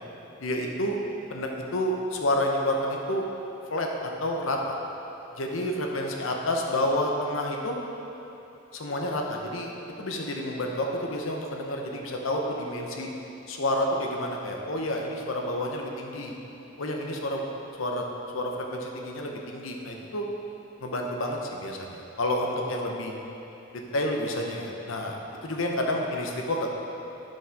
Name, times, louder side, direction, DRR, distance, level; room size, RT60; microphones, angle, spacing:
voice 1, 0.4-1.0 1.3-3.3 3.7-4.8 5.3-7.8 8.7-9.7 10.0-13.1 13.5-16.3 16.8-17.4 17.8-18.0 18.3-20.2 20.8-23.1 23.7-26.7, left 1 dB, 85° left, 1 dB, 0.8 m, -29 dB
11.0 x 5.3 x 3.5 m, 2.9 s
head